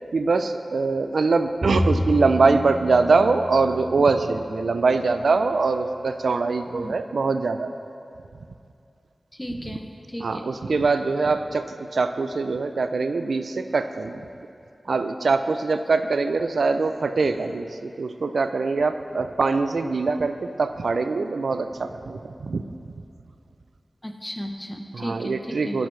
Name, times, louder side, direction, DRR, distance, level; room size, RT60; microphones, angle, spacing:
voice 1, 0.1-7.7 9.7-9.8 10.2-14.3 14.9-22.6 24.9-25.9, right 4 dB, 90° right, 9 dB, 0.4 m, -23 dB
Bowed string instrument, 1.6-5.0, equal, 50° right, 1.6 m, -29 dB
voice 2, 9.3-10.4 24.0-25.8, equal, 10° left, 4 dB, 0.8 m, -35 dB
10.5 x 10.5 x 3.2 m, 2.5 s
wide cardioid pair, 85°, 0 cm